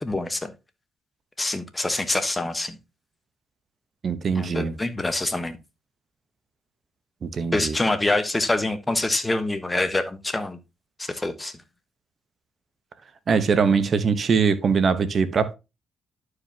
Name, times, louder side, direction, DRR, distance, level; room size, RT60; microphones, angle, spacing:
voice 1, 0.0-0.5 1.4-2.8 4.3-5.6 7.5-10.6 11.0-11.5, left 2 dB, 15° left, 1.1 m, -25 dB
voice 2, 4.0-4.7 7.2-7.7 13.3-15.5, right 5 dB, 50° right, 1.0 m, -22 dB
11.0 x 4.9 x 2.8 m
cardioid pair, 90°, 0 cm